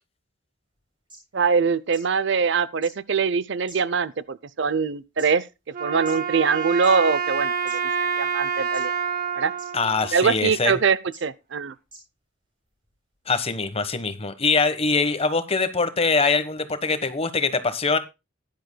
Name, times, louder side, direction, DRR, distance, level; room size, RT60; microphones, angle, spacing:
sound 1, 0.8-0.9 1.1-1.2 1.9-2.0 2.8-2.9 3.7-4.1 4.8-5.3 6.1-6.2 6.7-6.9 7.7-7.8 8.7-9.0 9.6-9.7 10.5-10.6 11.1-11.2 11.9-12.0 12.8-12.9, right 1 dB, 25° right, 6.3 m, -44 dB
voice 1, 1.3-5.4 5.8-7.8 8.2-8.9 9.4-9.5 10.1-11.7, right 5 dB, 65° right, 0.6 m, -23 dB
Wind instrument woodwind instrument, 5.7-10.9, right 6 dB, 45° right, 1.6 m, -28 dB
voice 2, 9.7-10.8 13.3-18.0, left 4 dB, 30° left, 1.2 m, -23 dB
16.0 x 10.5 x 2.2 m
head